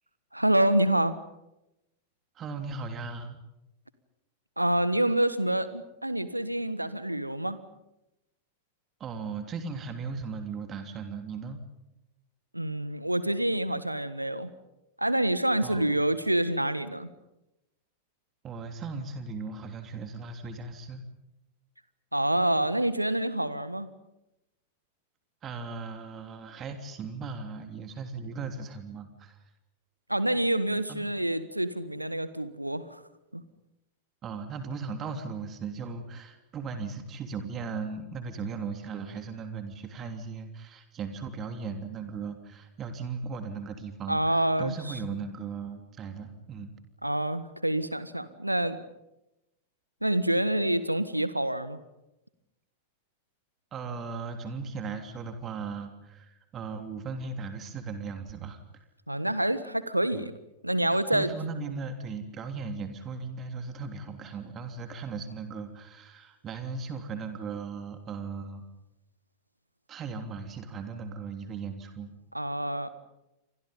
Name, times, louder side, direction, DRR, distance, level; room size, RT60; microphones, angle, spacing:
voice 1, 0.3-1.1 4.6-7.6 12.5-14.5 15.0-17.1 22.1-23.9 30.1-33.0 33.3-33.4 44.1-45.0 47.0-48.8 50.0-51.8 59.1-60.3 60.6-61.3 72.3-72.9, right 1 dB, 85° right, 14 dB, 1.5 m, -27 dB
voice 2, 2.3-3.4 9.0-11.6 15.6-15.9 18.4-21.0 25.4-29.4 30.9-31.0 34.2-46.7 53.7-58.6 60.1-60.3 61.1-68.6 69.9-72.1, right 4 dB, 30° right, 6 dB, 3.1 m, -37 dB
29.5 x 25.5 x 5.4 m, 0.90 s
figure-of-eight pair, 90°, 0 cm